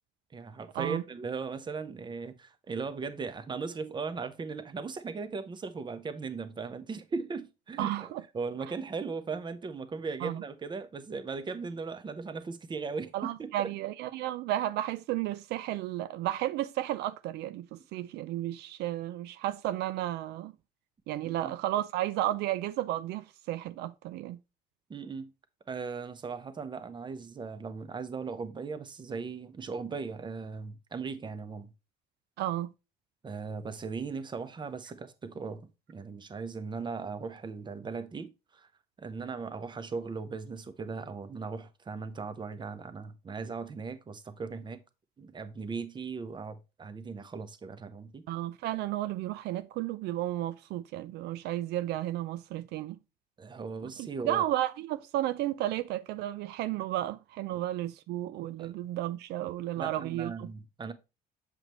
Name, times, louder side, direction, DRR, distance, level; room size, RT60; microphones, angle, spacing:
voice 1, 0.3-13.7 21.2-21.5 24.9-25.3 25.7-31.7 33.2-38.7 39.0-44.8 45.2-48.3 53.4-54.4 58.6-58.7 59.8-60.9, right 4 dB, 25° right, 0.8 m, -38 dB
voice 2, 7.8-8.2 10.2-10.4 13.1-20.5 21.1-24.4 32.4-32.7 48.3-53.0 53.8-60.5, right 14 dB, 80° right, 0.5 m, -33 dB
7.6 x 5.0 x 3.0 m
cardioid pair, 110°, 17 cm